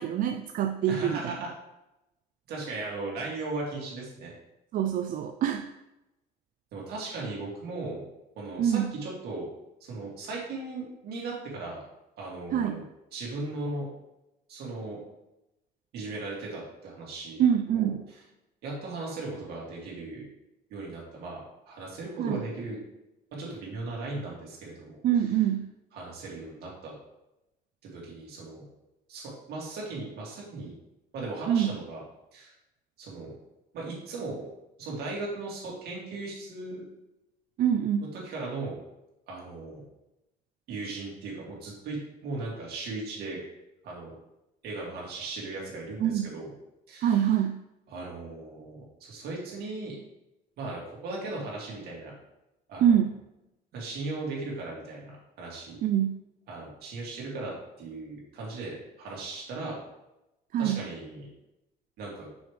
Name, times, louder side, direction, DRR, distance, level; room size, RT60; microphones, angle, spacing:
voice 1, 0.0-1.3 4.7-5.7 8.6-8.9 12.5-12.8 17.4-18.0 22.2-22.4 25.0-25.7 31.5-31.7 37.6-38.1 46.0-46.3 47.0-47.6 52.8-53.1 55.8-56.2 60.5-60.8, right 9 dB, 55° right, 6 dB, 0.4 m, -25 dB
voice 2, 0.8-1.5 2.5-4.3 6.7-8.0 8.4-9.5 9.8-11.8 12.2-12.8 13.1-13.9 14.5-15.0 15.9-17.4 17.7-18.2 18.6-20.2 20.7-22.8 23.3-25.4 25.9-26.9 27.9-28.6 29.1-30.7 31.1-32.0 32.3-32.5 33.0-33.3 33.7-34.5 34.8-36.8 38.1-38.8 39.3-39.8 40.7-43.4 43.8-44.2 44.6-46.5 46.9-47.4 47.9-49.9 50.6-52.1 52.7-53.0 53.7-55.8 56.5-59.8 60.6-61.3 62.0-62.3, right 3 dB, 70° right, -3 dB, 2.3 m, -37 dB
6.2 x 4.9 x 3.3 m, 0.92 s
cardioid pair, 110°, 17 cm